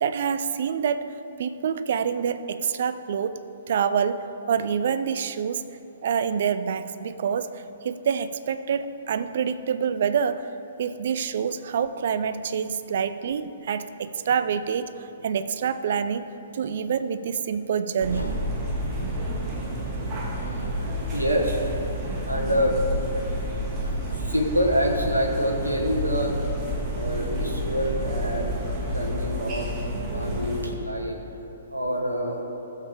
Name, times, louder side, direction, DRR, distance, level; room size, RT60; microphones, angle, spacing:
voice 1, 0.0-3.4 3.7-5.6 6.0-10.5 10.8-18.3, right 7 dB, 50° right, 12 dB, 0.4 m, -27 dB
Room (People + Maintenance), 18.0-30.7, equal, 25° right, 1.6 m, -29 dB
voice 2, 20.4-20.7 21.1-21.6 22.3-23.0 24.2-26.3 26.9-28.5 28.9-29.7 30.1-31.2 31.7-32.4, equal, 85° right, 0 dB, 1.3 m, -26 dB
15.5 x 7.4 x 3.6 m, 3.0 s
figure-of-eight pair, 120°, 0 cm